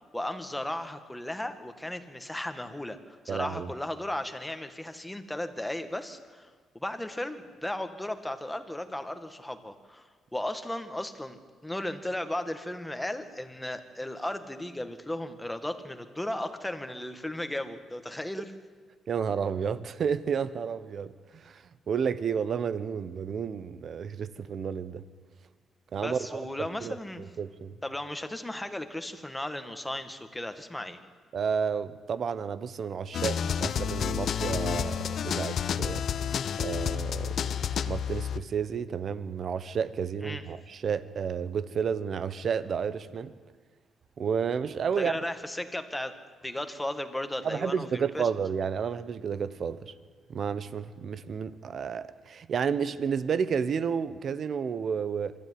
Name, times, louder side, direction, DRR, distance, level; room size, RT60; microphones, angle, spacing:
voice 1, 0.0-18.5 26.0-27.2 27.8-31.0 40.2-40.4 45.0-46.1 46.4-48.3, left 1 dB, 10° left, 1.9 m, -35 dB
voice 2, 3.3-3.7 19.1-25.0 25.9-26.4 26.8-27.7 31.3-36.0 36.6-37.5 37.9-43.3 44.2-45.1 47.4-49.9 50.3-55.3, right 6 dB, 55° right, 1.1 m, -31 dB
sound 1, 33.1-38.4, left 8 dB, 60° left, 0.7 m, -30 dB
25.5 x 13.0 x 9.6 m
cardioid pair, 90°, 0 cm